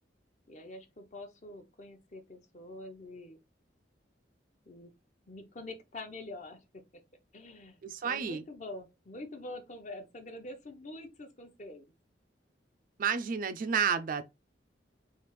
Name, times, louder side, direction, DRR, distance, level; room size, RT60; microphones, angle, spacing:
voice 1, 0.5-3.4 4.7-4.9 5.3-6.6 6.9-7.0 7.3-11.8, left 2 dB, 45° left, 0.7 m, -45 dB
voice 2, 7.8-8.4 13.0-14.2, right 6 dB, 50° right, 0.4 m, -30 dB
3.3 x 2.4 x 3.1 m
head